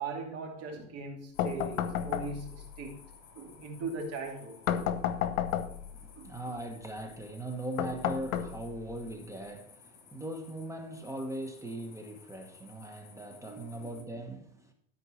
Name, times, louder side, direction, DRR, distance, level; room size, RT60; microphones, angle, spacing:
voice 1, 0.0-3.0 3.4-4.6 6.2-6.4 13.5-13.7, right 3 dB, 35° right, 2.5 m, -39 dB
sound 1, 1.3-14.0, left 6 dB, 50° left, 4.1 m, -57 dB
sound 2, 1.4-2.7 4.7-6.0 7.8-9.0, left 9 dB, 85° left, 1.0 m, -32 dB
voice 2, 5.9-14.7, right 1 dB, 10° right, 1.1 m, -40 dB
12.5 x 4.5 x 6.3 m
supercardioid pair, 130°, 40 cm